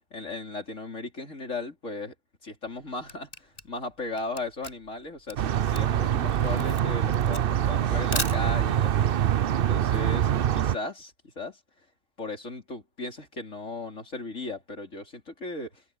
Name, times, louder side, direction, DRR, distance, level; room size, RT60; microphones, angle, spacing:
voice 1, 0.1-2.1 2.4-9.1 9.5-11.6 12.2-15.8, left 2 dB, 75° left, 4.7 m, -36 dB
Camera, 2.6-8.9, left 1 dB, 30° left, 7.1 m, -38 dB
sound 1, 5.4-10.7, right 10 dB, 55° right, 0.7 m, -24 dB
open air
omnidirectional pair, 1.3 m